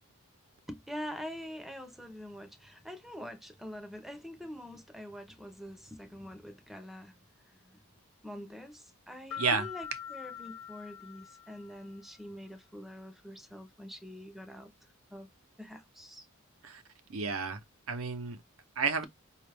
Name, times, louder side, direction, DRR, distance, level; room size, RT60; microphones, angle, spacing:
voice 1, 0.7-7.2 7.5-7.7 8.2-14.7 15.1-15.3 15.6-16.3, equal, ahead, 0.6 m, -45 dB
sound 1, 9.3-12.0, left 9 dB, 75° left, 1.0 m, -44 dB
voice 2, 17.1-17.6 17.9-18.4 18.8-19.1, right 5 dB, 70° right, 0.7 m, -31 dB
5.0 x 2.4 x 3.3 m
head